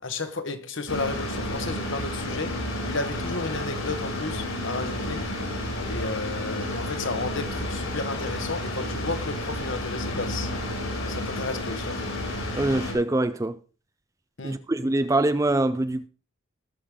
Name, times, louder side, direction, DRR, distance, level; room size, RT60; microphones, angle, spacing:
voice 1, 0.0-2.5 2.8-5.3 5.8-10.5 11.0-12.1 14.4-14.6, left 3 dB, 60° left, 1.3 m, -33 dB
sound 1, 0.9-12.9, left 1 dB, 75° left, 5.3 m, -31 dB
voice 2, 12.5-13.6 14.4-16.1, right 2 dB, 15° right, 0.4 m, -24 dB
18.0 x 6.6 x 3.7 m
head